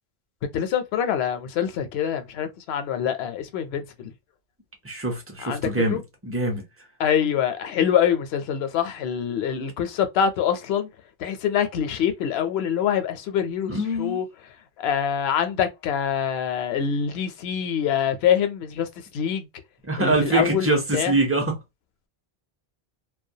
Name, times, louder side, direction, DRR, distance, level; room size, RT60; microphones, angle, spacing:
voice 1, 0.5-4.1 5.4-6.0 7.0-10.9 11.2-14.3 14.8-18.9 19.1-19.5 20.0-21.1, left 8 dB, 80° left, 0.8 m, -25 dB
voice 2, 4.8-6.6 13.7-14.2 19.8-21.6, right 2 dB, 15° right, 0.5 m, -24 dB
2.2 x 2.2 x 2.6 m
omnidirectional pair, 1.1 m